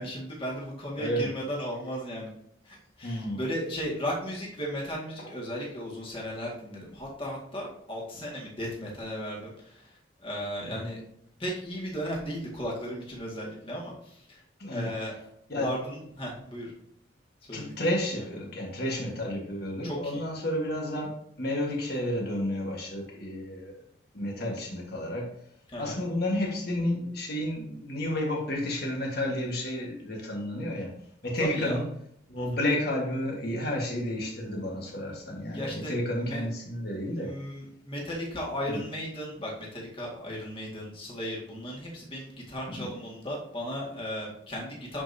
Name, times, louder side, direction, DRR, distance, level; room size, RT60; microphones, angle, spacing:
voice 1, 0.0-2.3 2.6-11.0 11.4-14.4 14.7-15.2 15.6-16.7 17.4-17.8 19.8-20.2 25.7-26.0 31.4-31.8 32.4-32.5 35.5-36.5 37.2-45.0, equal, 25° left, -3 dB, 2.0 m, -36 dB
voice 2, 1.0-1.3 3.0-3.4 5.2-5.3 10.7-10.9 14.6-14.9 15.5-15.7 17.5-23.8 24.1-25.3 25.8-31.0 31.2-31.8 32.3-37.3 38.7-38.8 42.7-42.9, left 1 dB, 50° left, -1 dB, 1.6 m, -31 dB
10.5 x 5.2 x 2.8 m, 0.69 s
head